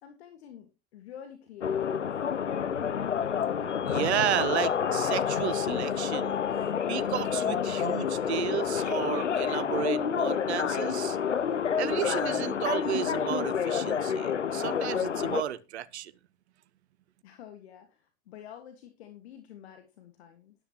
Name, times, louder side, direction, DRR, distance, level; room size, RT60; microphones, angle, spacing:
voice 1, 0.0-2.1 17.2-20.5, left 9 dB, 65° left, 1.7 m, -49 dB
sound 1, 1.6-15.4, left 7 dB, 90° left, 0.6 m, -29 dB
voice 2, 3.9-6.4 6.9-11.2 11.7-16.1, right 11 dB, 70° right, 0.9 m, -32 dB
12.5 x 12.0 x 2.9 m
figure-of-eight pair, 80°, 35 cm